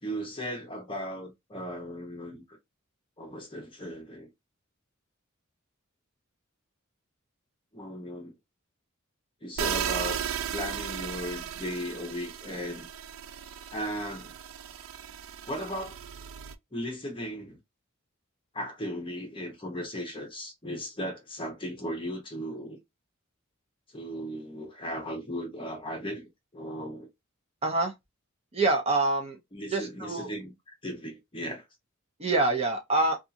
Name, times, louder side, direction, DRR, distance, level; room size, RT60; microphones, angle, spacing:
voice 1, 0.0-2.6 3.2-4.3 7.7-8.3 9.4-12.9 13.7-14.3 15.5-16.0 16.7-17.6 18.5-22.8 23.9-27.1 29.5-31.6, equal, 25° left, 0.8 m, -37 dB
sound 1, 9.6-16.5, right 8 dB, 70° right, 0.3 m, -36 dB
voice 2, 27.6-27.9 28.5-29.4 29.7-30.3 32.2-33.2, right 2 dB, 30° right, 0.6 m, -26 dB
2.7 x 2.4 x 2.5 m
head